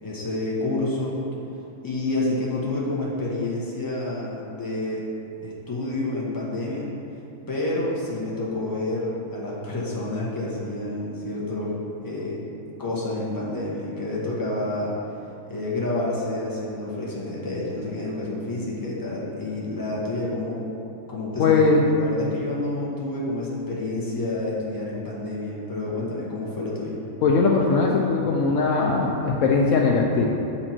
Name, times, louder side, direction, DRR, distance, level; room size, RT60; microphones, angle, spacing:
voice 1, 0.0-1.2 1.8-5.0 5.4-6.8 7.5-11.7 12.0-12.4 12.8-15.0 15.5-20.7 21.1-26.9, left 2 dB, 15° left, -6 dB, 1.1 m, -29 dB
voice 2, 21.4-21.9 27.2-30.3, left 4 dB, 70° left, -1 dB, 0.9 m, -20 dB
7.7 x 4.3 x 4.4 m, 2.8 s
omnidirectional pair, 1.5 m